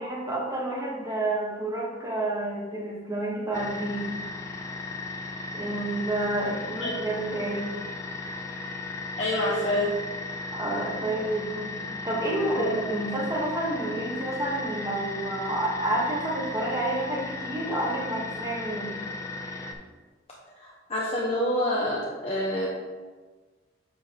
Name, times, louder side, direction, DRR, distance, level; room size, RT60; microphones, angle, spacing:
voice 1, 0.0-4.1 5.5-7.7 10.5-11.8 12.0-18.9, right 1 dB, 20° right, -3 dB, 1.3 m, -29 dB
sound 1, 3.5-19.7, left 3 dB, 15° left, 0.7 m, -36 dB
voice 2, 9.2-9.9 12.6-12.8 20.9-22.7, left 1 dB, 35° left, -5 dB, 1.1 m, -26 dB
7.5 x 7.4 x 3.0 m, 1.4 s
head